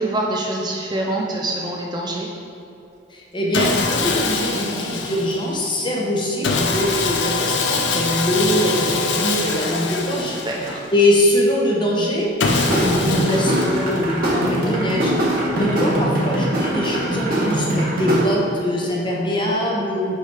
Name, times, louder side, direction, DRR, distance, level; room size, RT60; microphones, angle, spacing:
voice 1, 0.0-2.3 10.3-10.9, right 2 dB, 25° right, -1 dB, 0.5 m, -25 dB
voice 2, 3.1-10.4 10.6-12.3 12.7-15.1 15.5-20.1, left 1 dB, 25° left, -3 dB, 1.0 m, -22 dB
Sawing, 3.5-5.6 6.4-11.0 12.4-14.2, left 4 dB, 65° left, 0.6 m, -23 dB
sound 1, 12.5-18.2, right 1 dB, 50° right, 1.3 m, -22 dB
5.6 x 4.9 x 4.8 m, 2.6 s
head